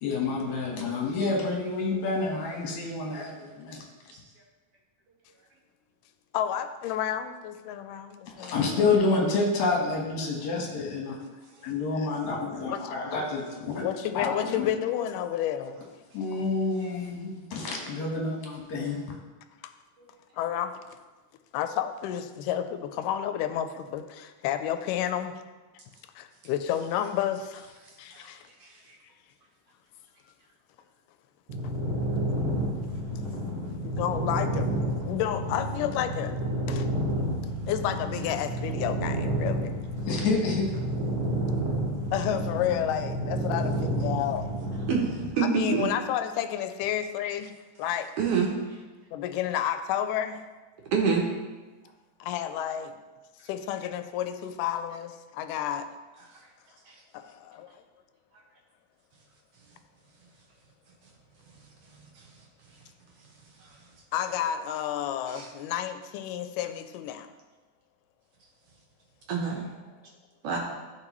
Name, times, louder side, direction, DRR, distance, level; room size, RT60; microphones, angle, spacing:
voice 1, 0.0-3.8 8.3-11.1 11.7-13.8 14.1-14.7 16.1-19.0 40.1-40.7, left 3 dB, 65° left, -1 dB, 2.5 m, -28 dB
voice 2, 6.3-8.7 11.6-11.7 12.0-12.1 12.6-13.1 13.8-15.8 19.6-19.7 20.3-20.7 21.5-25.3 26.2-27.7 28.0-28.4 31.6-31.7 33.8-34.7 35.0-36.4 36.7-36.9 37.7-39.8 42.1-44.5 45.4-47.5 47.8-48.1 49.1-50.5 52.2-53.0 53.4-55.9 57.1-57.7 64.1-67.3, left 10 dB, 85° left, 9 dB, 2.1 m, -31 dB
sound 1, 31.5-45.3, right 1 dB, 45° right, 1.3 m, -30 dB
voice 3, 44.9-45.9 48.2-48.5 50.9-51.3 56.9-57.0 65.3-65.5 69.3-69.7 70.4-70.6, right 6 dB, 75° right, -1 dB, 1.4 m, -26 dB
12.5 x 4.5 x 3.0 m, 1.3 s
omnidirectional pair, 3.7 m